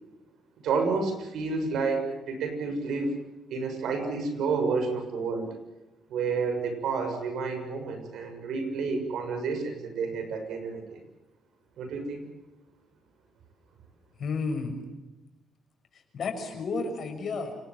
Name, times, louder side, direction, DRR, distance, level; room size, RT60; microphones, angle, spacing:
voice 1, 0.6-3.2 3.5-5.5 6.1-11.0 11.8-12.2, right 4 dB, 75° right, 6 dB, 6.7 m, -30 dB
voice 2, 14.2-14.7 15.9-17.5, left 4 dB, 55° left, 5 dB, 6.6 m, -32 dB
28.5 x 19.0 x 7.7 m, 1.0 s
cardioid pair, 90°, 0 cm